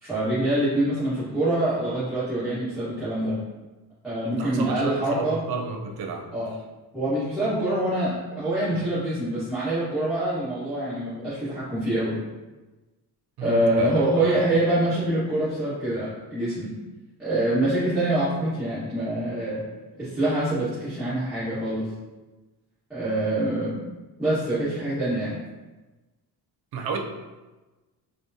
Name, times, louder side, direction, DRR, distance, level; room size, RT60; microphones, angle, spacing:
voice 1, 0.0-3.4 4.0-5.4 6.3-6.5 6.9-12.2 13.4-16.7 17.2-19.6 20.0-21.9 22.9-23.8 24.2-25.4, right 1 dB, ahead, -16 dB, 1.4 m, -25 dB
voice 2, 4.2-6.3 8.7-8.8 13.4-14.5 26.7-27.0, right 5 dB, 70° right, 3 dB, 0.6 m, -32 dB
6.3 x 2.2 x 2.7 m, 1.2 s
wide cardioid pair, 165°, 38 cm